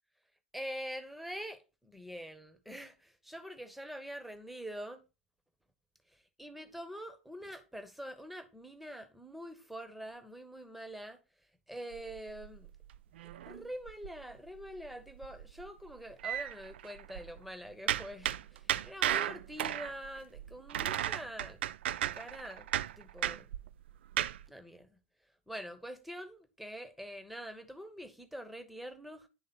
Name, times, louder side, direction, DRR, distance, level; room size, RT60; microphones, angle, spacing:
voice 1, 0.5-5.0 6.1-11.2 11.7-12.7 13.4-21.6 22.1-22.7 23.0-23.5 24.5-25.0 25.5-29.3, equal, ahead, 1.0 m, -45 dB
sound 1, 11.9-14.3 14.6-14.9 15.2-17.4 17.9-24.5, right 12 dB, 60° right, 0.3 m, -35 dB
10.0 x 3.5 x 4.1 m
figure-of-eight pair, 90°, 7 cm